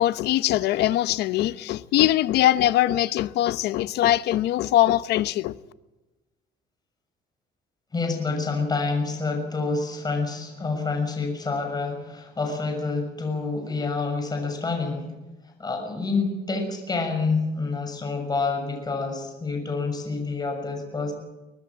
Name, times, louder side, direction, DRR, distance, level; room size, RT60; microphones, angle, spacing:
voice 1, 0.0-5.6, left 14 dB, 80° left, 1.0 m, -22 dB
voice 2, 7.9-15.1 15.4-21.1, left 4 dB, 25° left, 6.6 m, -28 dB
23.5 x 20.0 x 7.4 m
cardioid pair, 110°, 17 cm